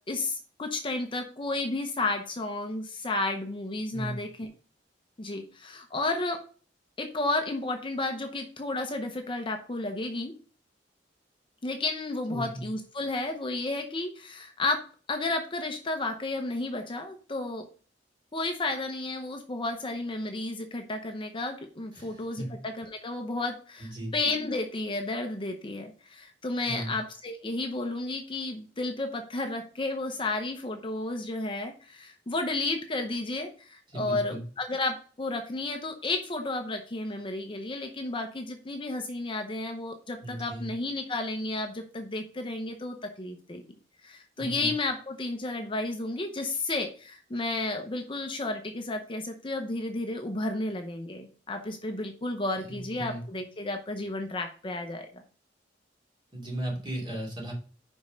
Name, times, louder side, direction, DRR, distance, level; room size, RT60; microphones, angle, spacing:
voice 1, 0.1-4.5 5.2-6.4 7.0-10.3 11.6-14.8 15.1-17.7 18.3-43.6 44.0-55.2, left 2 dB, 30° left, 5 dB, 0.7 m, -32 dB
voice 2, 12.3-12.6 21.9-22.5 23.8-24.1 26.7-26.9 33.9-34.4 40.2-40.7 44.4-44.7 52.6-53.2 56.3-57.5, right 1 dB, 30° right, -2 dB, 2.7 m, -36 dB
5.4 x 5.1 x 5.1 m, 0.40 s
head